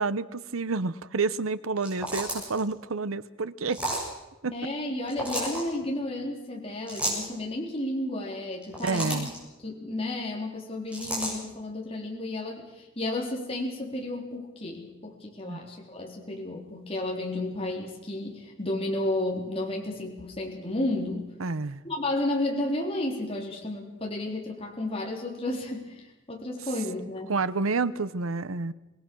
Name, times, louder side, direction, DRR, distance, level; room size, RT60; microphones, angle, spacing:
voice 1, 0.0-3.8 4.4-4.5 8.8-9.3 15.5-15.6 21.4-21.8 27.3-28.7, right 4 dB, 85° right, 16 dB, 0.9 m, -29 dB
sound 1, 1.8-2.6 3.7-4.1 5.1-5.6 6.9-7.3 8.5-9.4 10.9-11.3, right 1 dB, 5° right, 7.4 m, -31 dB
voice 2, 4.5-9.3 9.6-21.3 21.8-26.0 26.3-27.3, left 1 dB, 30° left, -1 dB, 3.9 m, -32 dB
25.5 x 19.5 x 6.3 m, 1.0 s
head